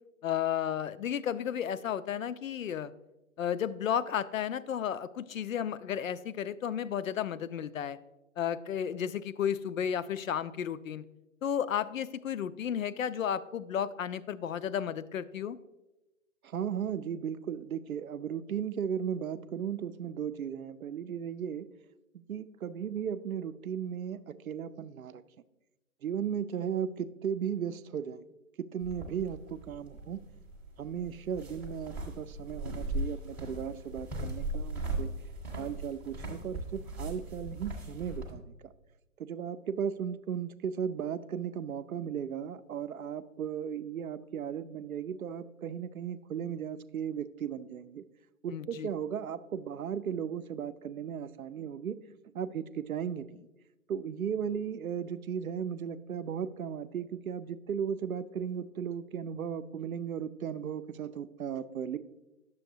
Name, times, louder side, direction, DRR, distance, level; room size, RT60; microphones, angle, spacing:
voice 1, 0.2-2.9 3.4-8.0 8.4-11.1 11.4-15.6 48.5-48.9, left 9 dB, 70° left, 15 dB, 0.5 m, -33 dB
voice 2, 16.4-21.7 22.1-25.2 26.0-28.2 28.6-30.2 30.8-35.1 35.6-38.7 39.2-48.0 48.4-52.0 52.3-53.5 53.9-62.0, right 8 dB, 80° right, 13 dB, 0.6 m, -36 dB
sound 1, 28.8-38.3, right 2 dB, 5° right, 0.7 m, -39 dB
9.5 x 7.0 x 2.7 m, 0.99 s
figure-of-eight pair, 130°, 41 cm